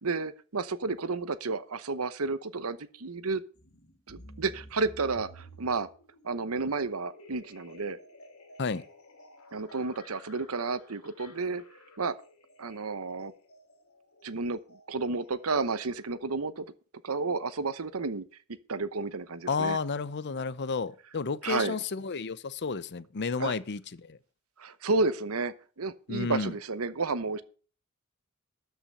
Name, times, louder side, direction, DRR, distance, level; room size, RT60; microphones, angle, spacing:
voice 1, 0.0-3.4 4.1-5.9 6.2-8.0 9.5-11.6 12.0-12.2 12.6-13.3 14.2-14.6 14.9-16.7 17.0-18.2 18.7-19.8 21.4-21.8 23.4-23.5 24.6-27.4, right 3 dB, 85° right, 0.9 m, -31 dB
sound 1, 3.5-16.2, equal, 80° left, 3.1 m, -53 dB
voice 2, 19.5-24.2 26.1-26.5, left 4 dB, 55° left, 0.7 m, -32 dB
13.0 x 5.8 x 6.7 m
head